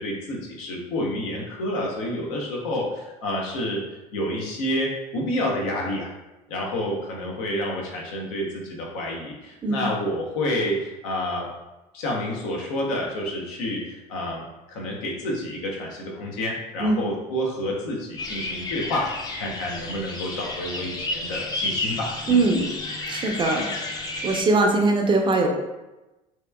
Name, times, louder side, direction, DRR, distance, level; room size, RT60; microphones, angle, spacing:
voice 1, 0.0-3.8 4.1-6.1 6.5-11.5 11.9-22.4, left 1 dB, 80° left, -2 dB, 0.7 m, -29 dB
sound 1, 18.2-24.4, left 2 dB, 25° left, 0.5 m, -31 dB
voice 2, 22.3-22.6 23.1-23.7 24.2-25.5, right 3 dB, 30° right, 2 dB, 0.5 m, -21 dB
2.8 x 2.3 x 2.2 m, 1.0 s
supercardioid pair, 85°, 18 cm